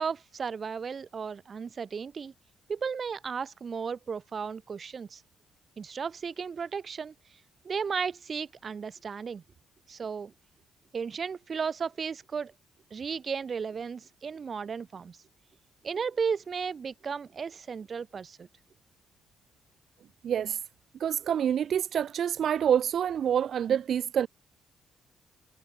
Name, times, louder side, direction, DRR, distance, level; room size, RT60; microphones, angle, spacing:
voice 1, 0.0-2.3 2.7-5.2 5.8-7.1 7.6-9.4 9.9-10.3 10.9-12.5 12.9-15.2 15.8-18.5, right 6 dB, 45° right, 2.3 m, -34 dB
voice 2, 20.2-20.6 21.0-24.3, right 9 dB, 60° right, 0.9 m, -27 dB
cardioid pair, 90°, 0 cm